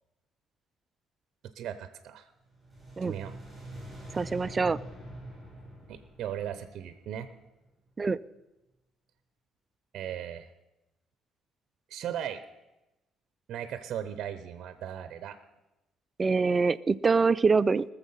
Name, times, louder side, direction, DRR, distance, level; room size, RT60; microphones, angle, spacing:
voice 1, 1.5-2.3 3.0-3.4 5.9-7.3 9.9-10.5 11.9-12.4 13.5-15.4, right 10 dB, 60° right, 11 dB, 0.7 m, -37 dB
sound 1, 2.5-7.6, right 1 dB, ahead, 6.2 m, -45 dB
voice 2, 4.1-4.8 8.0-8.2 16.2-17.9, right 4 dB, 20° right, 15 dB, 0.3 m, -24 dB
19.5 x 7.1 x 5.5 m, 0.99 s
cardioid pair, 140°, 0 cm